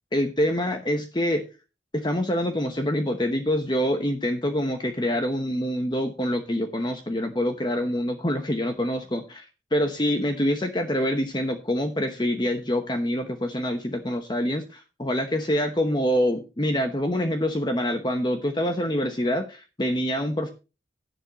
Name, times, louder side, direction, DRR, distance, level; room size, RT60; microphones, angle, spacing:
voice 1, 0.1-1.4 1.9-9.5 9.7-20.5, equal, 25° left, 6 dB, 0.9 m, -26 dB
12.0 x 11.0 x 3.0 m, 0.30 s
head